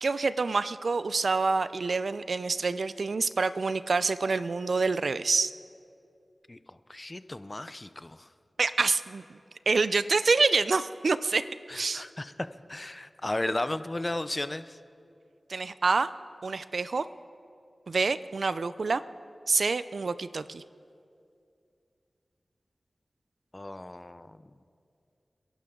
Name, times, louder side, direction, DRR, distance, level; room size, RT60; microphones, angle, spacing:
voice 1, 0.0-5.5 8.6-9.4 9.7-11.4 11.7-12.0 15.5-16.1 16.4-17.1 17.9-19.0 19.5-20.6, right 4 dB, 80° right, 14 dB, 0.4 m, -27 dB
voice 2, 6.9-8.3 11.7-12.3 12.7-14.8 23.5-24.4, left 1 dB, 35° left, 12 dB, 0.6 m, -34 dB
29.5 x 11.0 x 3.8 m, 2.5 s
cardioid pair, 50°, 0 cm